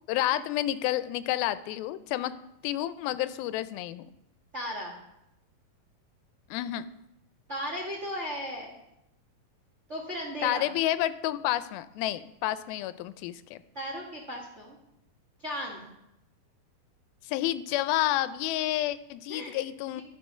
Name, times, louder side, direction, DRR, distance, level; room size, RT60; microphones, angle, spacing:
voice 1, 0.1-2.3 2.6-4.1 6.5-6.9 10.4-13.6 17.3-20.0, left 14 dB, 90° left, 14 dB, 2.4 m, -30 dB
voice 2, 4.5-4.9 7.5-8.7 9.9-10.7 13.7-14.8 15.4-15.9 19.3-19.6 19.9-20.0, equal, 70° right, -2 dB, 0.6 m, -36 dB
11.5 x 6.6 x 5.5 m, 0.86 s
omnidirectional pair, 4.2 m